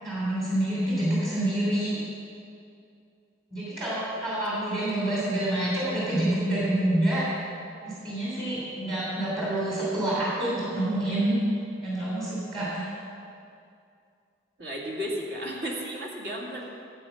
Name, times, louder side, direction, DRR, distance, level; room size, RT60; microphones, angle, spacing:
voice 1, 0.0-2.0 3.5-7.2 7.8-11.4 11.8-12.9, right 1 dB, 25° right, -8 dB, 2.9 m, -27 dB
voice 2, 14.6-16.6, equal, 65° right, -2 dB, 2.2 m, -34 dB
13.5 x 8.0 x 5.7 m, 2.4 s
head